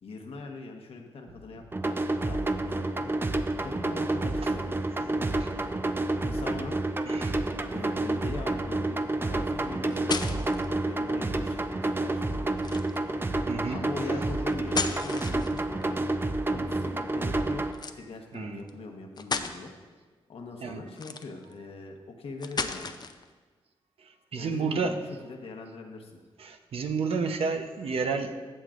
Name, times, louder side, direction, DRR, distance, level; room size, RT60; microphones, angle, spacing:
voice 1, 0.0-3.1 3.6-5.4 6.2-6.9 7.4-12.6 13.7-16.0 16.5-17.7 18.0-19.7 20.3-22.9 24.3-25.0 25.2-26.1, left 3 dB, 70° left, 3 dB, 1.1 m, -42 dB
sound 1, 1.7-17.7, right 2 dB, 20° right, 0.5 m, -29 dB
voice 2, 7.1-7.5 9.9-10.1 13.5-13.9 18.3-18.6 20.6-20.8 24.0-25.0 26.4-28.4, right 4 dB, 70° right, 6 dB, 0.8 m, -31 dB
sound 2, 9.7-10.7 12.6-13.1 14.5-15.8 17.7-18.0 18.7-18.8 19.2-19.6 20.9-21.5 22.4-23.2, left 4 dB, 45° left, 0.5 m, -33 dB
16.0 x 6.4 x 2.5 m, 1.4 s
cardioid pair, 60°, 10 cm